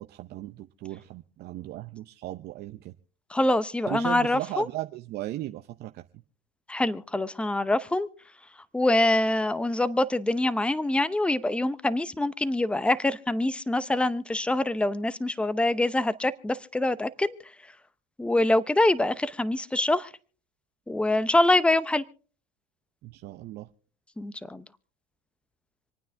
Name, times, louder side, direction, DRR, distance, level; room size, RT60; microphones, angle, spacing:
voice 1, 0.0-2.9 3.9-6.0 23.0-23.7, right 15 dB, 50° right, 0.8 m, -37 dB
voice 2, 3.3-4.7 6.7-8.1 8.7-17.4 18.2-20.1 20.9-22.0 24.2-24.6, left 1 dB, 5° left, 0.7 m, -25 dB
27.0 x 9.3 x 3.5 m
supercardioid pair, 95°, 21 cm